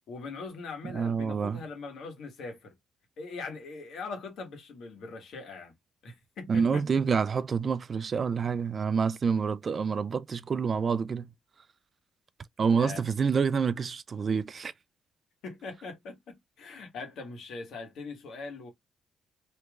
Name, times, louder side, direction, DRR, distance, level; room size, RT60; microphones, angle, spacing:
voice 1, 0.1-2.7 3.2-5.8 6.0-6.8 12.7-13.0 15.4-18.7, left 4 dB, 70° left, 1.6 m, -41 dB
voice 2, 0.8-1.6 6.5-11.3 12.6-14.7, right 6 dB, 45° right, 0.3 m, -27 dB
3.2 x 3.1 x 2.4 m
cardioid pair, 90°, 0 cm